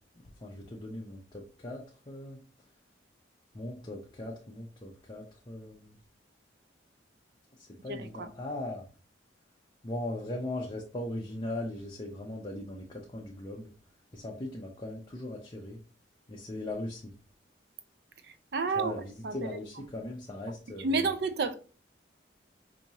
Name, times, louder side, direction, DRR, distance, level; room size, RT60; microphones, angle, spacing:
voice 1, 0.4-2.4 3.5-6.0 7.6-8.9 9.8-13.7 14.1-15.8 16.3-17.1 18.8-21.1, left 1 dB, 25° left, 0.6 m, -39 dB
voice 2, 7.9-8.3 18.5-18.9 19.2-19.4 20.8-21.6, right 4 dB, 60° right, 0.5 m, -29 dB
5.2 x 2.7 x 2.8 m
head